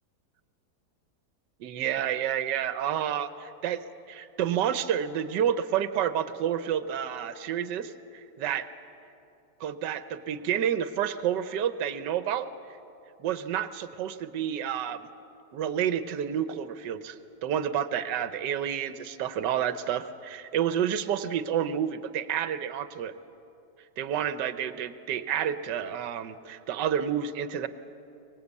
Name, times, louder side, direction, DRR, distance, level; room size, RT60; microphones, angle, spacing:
voice 1, 1.6-8.7 9.6-12.5 13.2-15.1 15.5-23.1 24.0-27.7, right 9 dB, 75° right, 12 dB, 1.5 m, -29 dB
23.5 x 19.5 x 8.3 m, 2.7 s
omnidirectional pair, 1.9 m